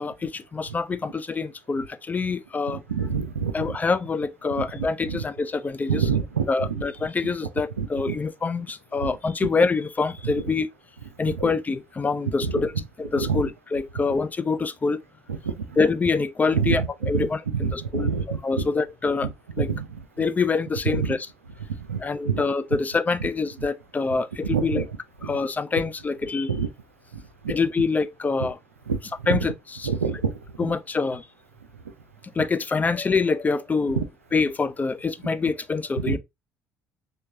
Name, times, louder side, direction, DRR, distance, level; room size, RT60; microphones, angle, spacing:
voice 1, 0.0-2.8 3.5-6.0 6.5-10.7 11.2-12.7 13.0-15.0 15.8-18.1 18.4-19.3 19.6-19.7 20.2-21.2 22.0-24.8 25.3-26.5 27.5-28.6 29.3-29.5 30.6-31.2 32.4-34.0 34.3-36.2, left 4 dB, 20° left, 0.4 m, -25 dB
voice 2, 2.7-3.8 4.6-5.2 5.9-6.8 7.2-7.3 7.8-8.2 9.0-9.1 9.4-9.5 10.2-10.3 11.3-11.5 12.4-12.6 13.1-13.4 15.3-15.6 16.5-17.2 17.5-18.7 19.2-19.3 19.6-20.0 20.9-21.1 21.8-22.4 23.2-23.3 24.4-24.9 25.2-25.4 26.5-26.7 27.1-27.6 28.9-29.5 29.8-30.3 30.6-30.7 34.0-34.1 36.0-36.2, right 6 dB, 85° right, 0.4 m, -27 dB
4.5 x 3.3 x 2.6 m
figure-of-eight pair, 55°, 7 cm